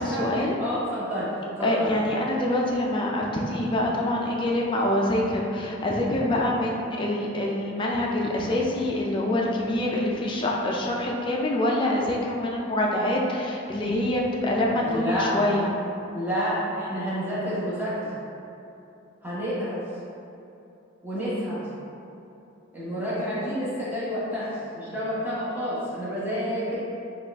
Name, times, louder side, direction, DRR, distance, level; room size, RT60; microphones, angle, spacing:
voice 1, 0.0-0.6 1.6-15.7, left 1 dB, 25° left, -2 dB, 0.4 m, -25 dB
voice 2, 0.6-1.9 14.7-15.3 16.1-18.1 19.2-19.8 21.0-21.7 22.7-26.8, equal, 10° right, -10 dB, 0.9 m, -29 dB
4.2 x 2.4 x 3.3 m, 2.8 s
head